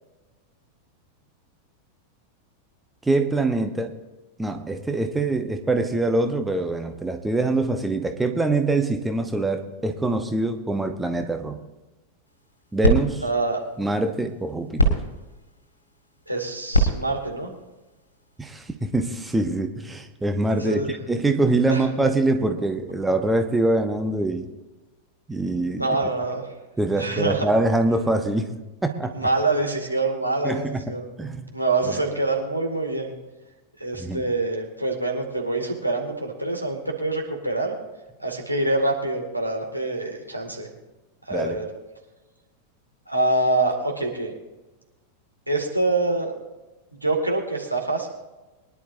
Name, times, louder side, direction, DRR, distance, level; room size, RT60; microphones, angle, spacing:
voice 1, 3.0-3.9 4.4-11.6 12.7-13.2 13.8-15.0 18.4-24.5 25.3-25.9 26.8-28.5 28.8-29.1 30.4-30.8 31.2-31.5 31.9-32.0 34.0-34.2 41.3-41.6, right 2 dB, 10° right, 6 dB, 1.0 m, -24 dB
sound 1, 12.3-18.7, right 1 dB, 80° left, 2.0 m, -27 dB
voice 2, 13.2-13.6 16.3-17.5 20.5-21.0 21.7-21.9 25.8-26.5 27.0-27.5 29.1-31.1 31.5-33.1 33.8-37.7 38.2-40.7 41.3-41.7 43.1-44.3 45.5-46.3 47.0-48.1, right 2 dB, 90° right, 0 dB, 2.3 m, -25 dB
23.0 x 11.0 x 2.7 m, 1.1 s
figure-of-eight pair, 90°, 0 cm